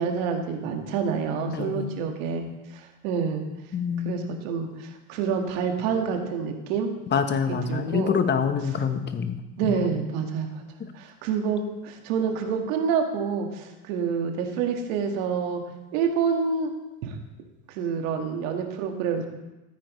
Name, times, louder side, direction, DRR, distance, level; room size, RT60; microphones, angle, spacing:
voice 1, 0.0-2.4 2.7-3.4 4.0-6.9 7.7-8.2 9.6-10.5 10.9-15.6 15.9-16.7 17.0-17.2 17.7-19.3, right 6 dB, 65° right, 3 dB, 1.9 m, -27 dB
voice 2, 1.5-1.9 3.7-4.3 7.1-9.4 9.6-9.8 10.8-10.9, left 6 dB, 25° left, 9 dB, 1.0 m, -26 dB
13.5 x 9.4 x 3.2 m, 1.0 s
hypercardioid pair, 100°, 42 cm